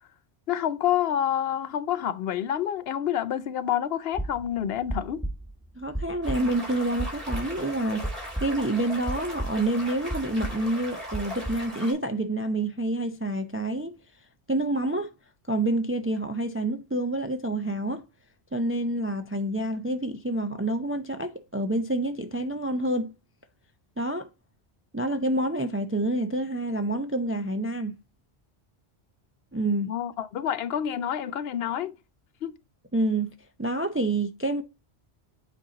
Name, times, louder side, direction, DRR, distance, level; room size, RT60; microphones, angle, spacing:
voice 1, 0.5-5.2 29.7-32.0 32.4-32.5, left 10 dB, 70° left, 0.8 m, -28 dB
sound 1, 4.1-8.8 9.0-9.8 10.1-10.7 11.1-11.7, right 1 dB, 5° right, 1.3 m, -33 dB
voice 2, 5.8-14.0 14.5-15.1 15.5-18.1 18.5-23.1 24.0-24.3 24.9-28.0 29.5-29.9 32.9-34.6, right 1 dB, 20° right, 0.3 m, -28 dB
sound 2, 6.2-11.9, equal, 60° right, 3.8 m, -39 dB
8.4 x 4.2 x 3.9 m
omnidirectional pair, 1.1 m